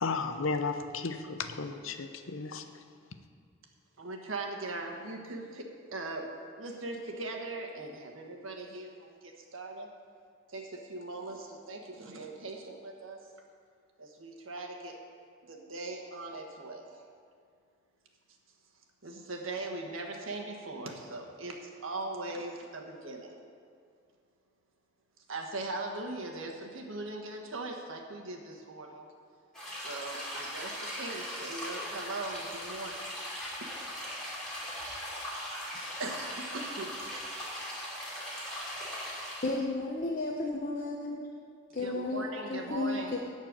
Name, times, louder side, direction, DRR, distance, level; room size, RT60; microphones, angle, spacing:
voice 1, 0.0-2.6, left 4 dB, 85° left, 8 dB, 0.8 m, -34 dB
voice 2, 4.0-5.6 5.9-6.2 6.6-9.9 10.5-13.2 14.0-14.9 15.4-17.0 19.0-23.3 25.3-29.1 29.7-33.1 34.7-35.0 36.0-37.1 41.8-43.1, right 2 dB, 90° right, 2 dB, 1.5 m, -40 dB
sound 1, 29.5-39.6, equal, 5° left, 2.9 m, -39 dB
voice 3, 39.4-41.3 41.7-42.2 42.5-43.2, left 2 dB, 45° left, 0 dB, 0.8 m, -33 dB
13.5 x 4.5 x 8.8 m, 2.2 s
head